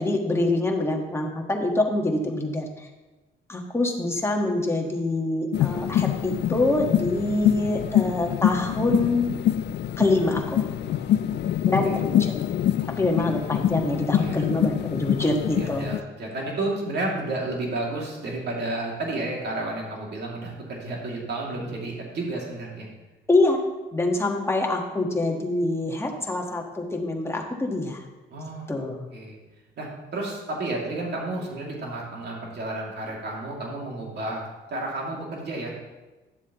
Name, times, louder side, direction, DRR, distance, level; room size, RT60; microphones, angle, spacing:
voice 1, 0.0-2.9 3.5-9.3 10.0-10.7 11.6-12.3 13.0-15.9 23.3-23.6 23.9-28.0 28.7-29.1, left 2 dB, 15° left, 1 dB, 1.4 m, -25 dB
sound 1, 5.5-16.0, left 11 dB, 60° left, 0.4 m, -25 dB
voice 2, 10.9-11.2 11.8-11.9 14.1-14.5 15.6-22.9 28.3-28.7 29.1-29.4 29.8-35.7, right 2 dB, 55° right, -2 dB, 2.4 m, -31 dB
11.0 x 7.3 x 3.0 m, 1.2 s
cardioid pair, 90°, 20 cm